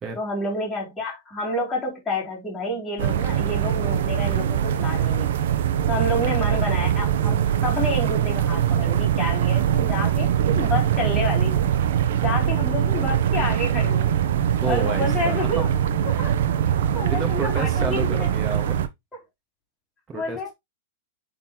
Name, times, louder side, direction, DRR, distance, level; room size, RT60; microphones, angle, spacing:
voice 1, 0.1-5.3 5.9-11.7 12.2-14.2 14.7-15.7 16.0-16.3 16.9-18.3 19.1-19.2 20.1-20.5, left 1 dB, 5° left, 3.0 m, -29 dB
sound 1, 3.0-18.9, right 9 dB, 65° right, 0.8 m, -22 dB
voice 2, 14.6-15.6 17.1-18.9 20.1-20.5, right 4 dB, 15° right, 1.6 m, -31 dB
8.7 x 4.0 x 3.0 m
supercardioid pair, 170°, 0 cm